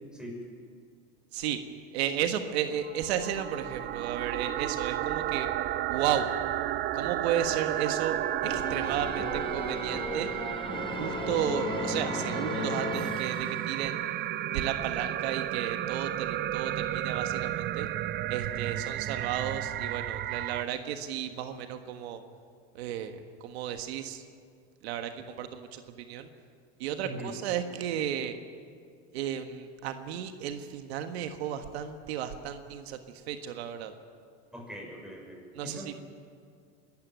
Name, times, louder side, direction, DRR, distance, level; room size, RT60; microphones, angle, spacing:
voice 1, 1.9-5.5 5.9-6.3 6.9-8.2 8.4-10.3 10.9-14.0 14.5-17.9 18.3-22.2 22.7-23.1 23.4-24.2 24.8-26.3 26.8-28.3 29.1-33.0 33.3-33.9 35.5-35.9, right 9 dB, 85° right, 7 dB, 1.5 m, -33 dB
sound 1, 2.8-20.6, right 13 dB, 35° right, 0.5 m, -33 dB
sound 2, 8.4-14.1, left 4 dB, 15° left, 1.4 m, -36 dB
voice 2, 27.0-27.3 34.5-36.0, equal, ahead, -1 dB, 6.2 m, -42 dB
22.5 x 13.5 x 9.2 m, 2.2 s
supercardioid pair, 125°, 31 cm